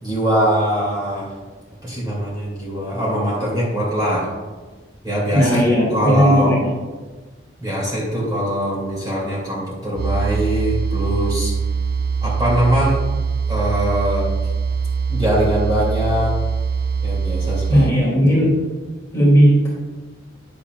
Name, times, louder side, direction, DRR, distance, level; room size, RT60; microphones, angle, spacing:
voice 1, 0.0-1.3 1.8-4.3 5.0-5.6 5.9-6.6 7.6-11.5 12.2-13.0 13.5-14.3 15.1-16.3 17.0-17.8 18.3-18.5, equal, 20° right, -7 dB, 2.5 m, -22 dB
voice 2, 5.3-6.6 17.7-18.5 19.1-19.7, equal, 15° left, -7 dB, 2.5 m, -15 dB
sound 1, 9.9-17.9, right 5 dB, 50° right, 0.3 m, -22 dB
10.0 x 7.0 x 2.4 m, 1.3 s
head